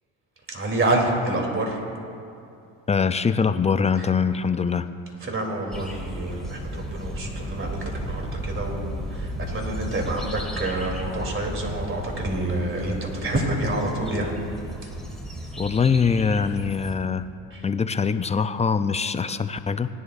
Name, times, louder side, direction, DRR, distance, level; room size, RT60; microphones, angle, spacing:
voice 1, 0.5-1.8 4.0-4.1 5.2-14.3 17.5-17.6, right 1 dB, 30° right, 0 dB, 3.1 m, -28 dB
voice 2, 2.9-4.9 15.6-17.2 17.6-19.9, left 5 dB, 15° left, 11 dB, 0.4 m, -23 dB
sound 1, 5.7-17.0, equal, ahead, 2.5 m, -34 dB
19.5 x 11.0 x 2.6 m, 2.5 s
hypercardioid pair, 70°, 41 cm